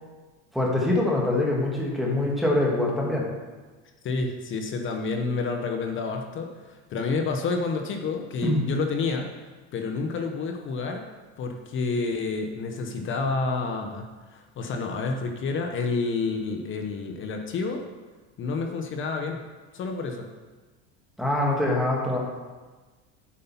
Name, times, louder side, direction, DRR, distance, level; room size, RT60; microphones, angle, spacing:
voice 1, 0.5-3.2 8.4-8.6 21.2-22.2, left 1 dB, ahead, -3 dB, 1.7 m, -24 dB
voice 2, 4.0-9.3 9.7-11.1 11.4-17.8 18.4-19.4 19.7-20.3, left 4 dB, 35° left, 4 dB, 0.9 m, -29 dB
8.5 x 5.4 x 5.6 m, 1.3 s
cardioid pair, 140°, 35 cm